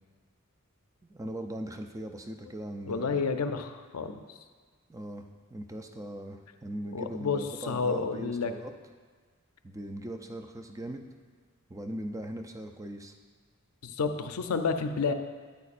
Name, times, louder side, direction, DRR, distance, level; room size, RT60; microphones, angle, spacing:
voice 1, 1.0-3.2 4.9-8.7 9.6-11.0 11.7-13.1, right 1 dB, 15° right, 5 dB, 0.4 m, -39 dB
voice 2, 2.9-4.2 6.9-8.5 13.8-15.1, left 5 dB, 80° left, 8 dB, 0.5 m, -30 dB
9.5 x 8.2 x 2.5 m, 1.5 s
head